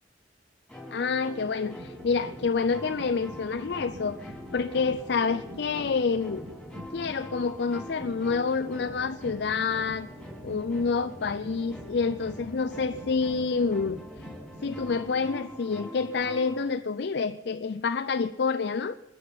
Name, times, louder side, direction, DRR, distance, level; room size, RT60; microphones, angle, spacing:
sound 1, 0.7-16.7, left 1 dB, 5° left, 4.4 m, -44 dB
voice 1, 0.9-6.4 6.9-10.1 10.4-14.0 14.6-19.0, left 5 dB, 70° left, 10 dB, 0.5 m, -28 dB
sound 2, 1.4-15.6, equal, 80° right, 2.4 m, -46 dB
23.5 x 10.5 x 5.7 m, 1.1 s
head